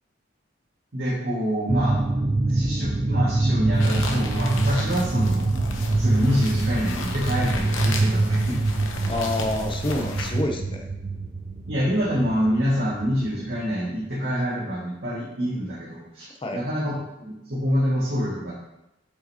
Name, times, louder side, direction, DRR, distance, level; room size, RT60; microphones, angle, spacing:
voice 1, 0.9-2.0 2.5-5.5 6.0-8.6 11.7-16.9 17.2-18.5, equal, 55° right, -8 dB, 1.8 m, -26 dB
sound 1, 1.7-13.7, right 2 dB, 25° right, 0.4 m, -25 dB
sound 2, 3.7-10.4, left 3 dB, 75° left, 0.9 m, -34 dB
voice 2, 9.1-10.9 16.4-16.6, left 1 dB, 25° left, 3 dB, 0.6 m, -28 dB
8.1 x 5.1 x 2.8 m, 0.90 s
head